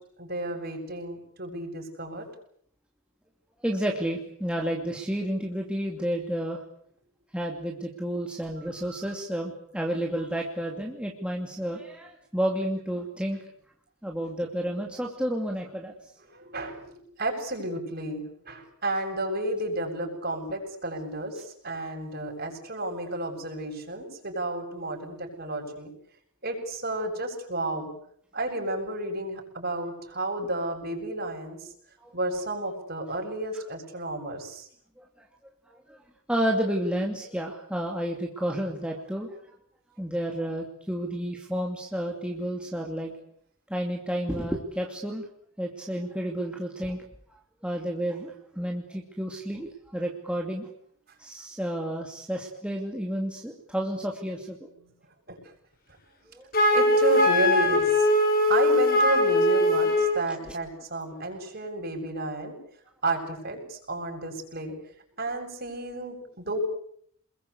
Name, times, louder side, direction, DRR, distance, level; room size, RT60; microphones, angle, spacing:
voice 1, 0.2-2.3 16.3-25.9 26.4-27.9 28.3-31.7 32.1-34.7 55.3-55.4 56.7-58.1 58.5-62.5 63.0-64.7 65.2-66.6, right 1 dB, 45° right, 2 dB, 7.8 m, -31 dB
voice 2, 3.6-6.6 7.3-13.4 14.0-15.9 32.0-32.1 35.0-35.1 35.7-36.0 36.3-39.3 40.0-43.1 43.7-45.3 45.6-47.0 47.6-50.7 51.2-54.6 56.3-56.4, equal, 5° right, 0 dB, 2.6 m, -31 dB
Wind instrument woodwind instrument, 56.5-60.2, left 1 dB, 40° left, 4.9 m, -21 dB
28.5 x 22.0 x 8.4 m, 0.66 s
head